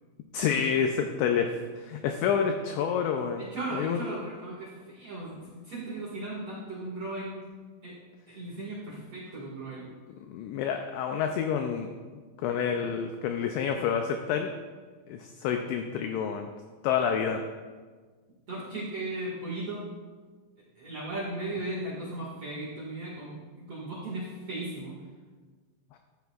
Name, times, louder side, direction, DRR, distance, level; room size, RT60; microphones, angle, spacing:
voice 1, 0.3-3.4 3.8-4.0 10.3-11.9 12.4-14.5 15.1-16.5 16.8-17.4 25.9-26.0, left 7 dB, 90° left, 5 dB, 2.5 m, -28 dB
voice 2, 3.4-7.4 7.8-8.0 8.3-9.9 18.5-19.9 20.8-25.0, right 2 dB, 50° right, -7 dB, 1.9 m, -37 dB
13.5 x 12.5 x 2.5 m, 1.4 s
omnidirectional pair, 5.9 m